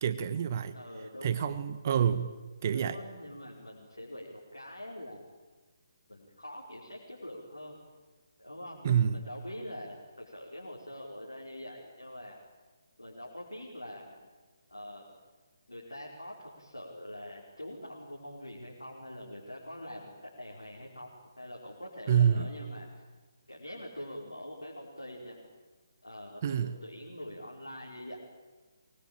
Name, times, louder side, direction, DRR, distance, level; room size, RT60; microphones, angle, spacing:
voice 1, 0.0-0.7 1.2-2.3 2.6-3.0 8.8-9.2 22.1-22.5 26.4-26.7, right 8 dB, 40° right, 13 dB, 1.3 m, -27 dB
voice 2, 0.7-1.4 2.7-5.3 6.1-7.8 8.4-12.4 13.0-14.2 14.7-15.0 15.7-22.9 23.5-25.4 26.0-28.2, left 1 dB, 90° left, -3 dB, 5.2 m, -44 dB
23.5 x 22.5 x 9.0 m, 1.3 s
figure-of-eight pair, 145°, 2 cm